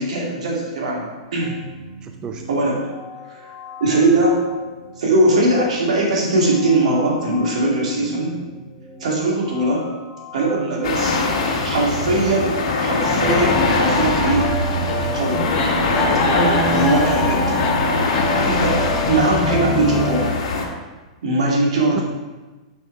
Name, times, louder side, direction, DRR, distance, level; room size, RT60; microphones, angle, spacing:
voice 1, 0.0-1.6 2.5-2.8 3.3-3.5 3.8-4.4 5.0-8.4 9.0-9.9 10.3-14.5 15.1-15.4 15.9-16.3 16.7-17.7 18.4-18.7 19.1-20.3 21.2-22.0, right 2 dB, 75° right, -2 dB, 2.5 m, -20 dB
sound 1, 1.4-14.2, left 3 dB, 5° right, 1.1 m, -41 dB
voice 2, 2.0-2.4 16.3-17.0, right 7 dB, 20° right, 5 dB, 0.4 m, -26 dB
sound 2, 10.8-20.7, left 4 dB, 65° left, 1.6 m, -23 dB
sound 3, 13.0-20.3, left 1 dB, 25° left, 1.2 m, -23 dB
6.2 x 5.4 x 4.8 m, 1.2 s
hypercardioid pair, 155°, 4 cm